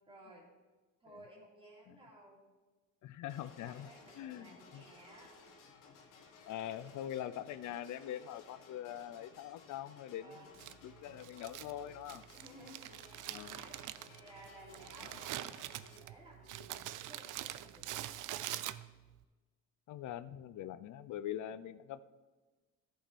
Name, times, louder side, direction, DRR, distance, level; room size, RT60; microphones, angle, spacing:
voice 1, 0.1-0.5 1.0-2.4 3.6-5.3 10.1-10.7 12.3-15.6 15.9-18.4, right 1 dB, 15° right, -5 dB, 2.6 m, -57 dB
voice 2, 3.0-3.9 4.2-4.8 6.5-10.4 10.8-12.2 13.3-13.5 19.9-22.0, left 11 dB, 65° left, 15 dB, 0.5 m, -43 dB
sound 1, 3.3-16.0, left 4 dB, 80° left, 1.5 m, -59 dB
Crumpling crinkling, 10.5-19.2, right 14 dB, 75° right, 0.5 m, -45 dB
13.5 x 5.8 x 4.2 m, 1.2 s
cardioid pair, 115°, 32 cm